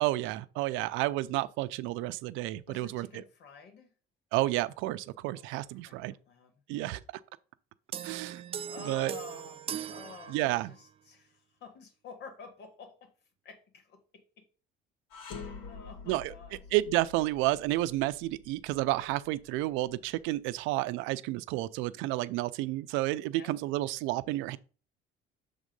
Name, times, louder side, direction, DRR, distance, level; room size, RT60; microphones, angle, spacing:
voice 1, 0.0-3.2 4.3-6.2 6.7-7.0 8.0-8.4 8.8-9.1 9.7-9.8 10.3-10.7 16.1-16.3 16.7-24.6, right 17 dB, 85° right, 0.5 m, -31 dB
voice 2, 2.7-3.9 5.4-5.5 5.8-6.5 8.6-9.6 9.9-13.1 13.4-14.4 15.3-16.6 23.3-23.5, left 5 dB, 60° left, 1.8 m, -50 dB
sound 1, 7.9-10.9, right 9 dB, 30° right, 0.4 m, -40 dB
sound 2, 15.1-20.3, left 5 dB, 90° left, 1.8 m, -47 dB
7.3 x 3.6 x 5.3 m
cardioid pair, 125°, 20 cm